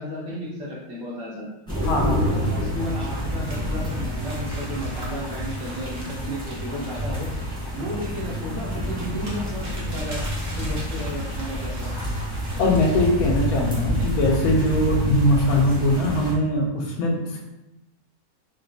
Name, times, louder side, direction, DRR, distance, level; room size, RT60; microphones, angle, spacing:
voice 1, 0.0-1.5 1.8-7.3 7.7-10.2 10.6-11.9, equal, 60° right, -6 dB, 1.3 m, -33 dB
sound 1, 1.7-16.3, equal, 5° left, 0.6 m, -28 dB
voice 2, 1.8-2.2 12.6-17.4, left 1 dB, 75° left, -1 dB, 1.0 m, -21 dB
sound 2, 3.4-11.9 12.4-13.4, right 1 dB, 40° right, 0.7 m, -43 dB
4.0 x 2.1 x 2.6 m, 0.93 s
omnidirectional pair, 1.7 m